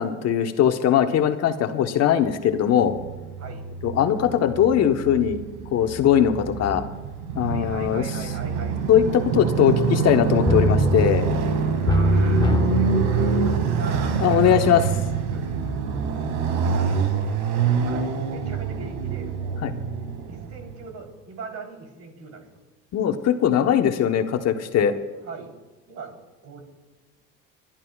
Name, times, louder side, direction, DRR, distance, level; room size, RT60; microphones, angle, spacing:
voice 1, 0.0-2.9 3.8-5.4 5.7-6.8 7.3-8.0 8.9-11.2 14.2-14.8 19.6-19.7 22.9-24.9, left 9 dB, 60° left, 7 dB, 1.2 m, -20 dB
Motorcycle, 2.7-20.8, right 6 dB, 85° right, 2.2 m, -26 dB
voice 2, 3.4-3.8 7.4-8.8 11.7-14.7 15.3-19.6 20.3-22.6 25.2-25.5 25.9-26.2 26.4-26.6, right 4 dB, 60° right, 2 dB, 3.8 m, -40 dB
sound 1, 10.5-15.1 15.5-15.6, left 2 dB, 15° left, 0.8 m, -24 dB
29.5 x 12.0 x 2.4 m, 1.3 s
supercardioid pair, 90°, 30 cm